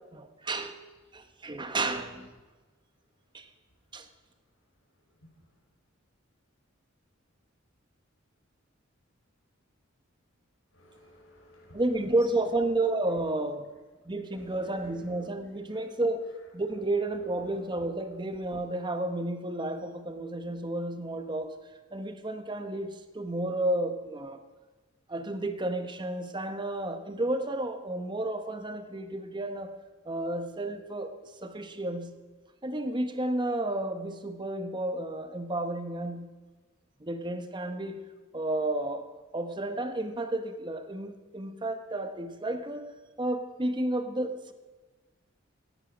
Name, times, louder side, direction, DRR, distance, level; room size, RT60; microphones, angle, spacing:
voice 1, 0.1-0.8 1.1-2.3 3.3-3.5 3.9-4.1 11.7-13.7 14.1-21.5 21.9-24.4 25.1-29.7 30.1-31.1 31.4-32.1 32.6-36.3 37.0-38.0 38.3-39.1 39.3-42.9 43.2-44.5, right 2 dB, 20° right, 7 dB, 1.0 m, -31 dB
voice 2, 10.7-12.5 14.3-15.3 15.7-15.9 16.2-16.4 16.7-17.6, left 1 dB, 80° left, -1 dB, 5.2 m, -57 dB
17.5 x 9.8 x 5.2 m, 1.3 s
head